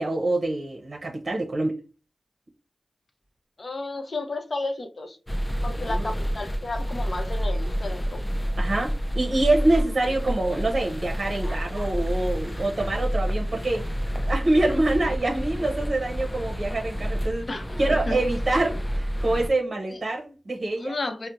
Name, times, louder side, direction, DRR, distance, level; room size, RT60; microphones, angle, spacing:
voice 1, 0.0-1.7 5.9-6.1 8.5-13.9 14.3-17.5 17.8-21.0, right 2 dB, 55° right, 0.6 m, -25 dB
voice 2, 3.6-5.2 5.6-8.2 17.5-17.7 18.1-18.2 19.9-20.0 20.8-21.3, left 2 dB, 55° left, 0.7 m, -32 dB
sound 1, 5.3-19.5, equal, 20° left, 0.4 m, -29 dB
4.3 x 2.0 x 2.6 m
cardioid pair, 45°, 0 cm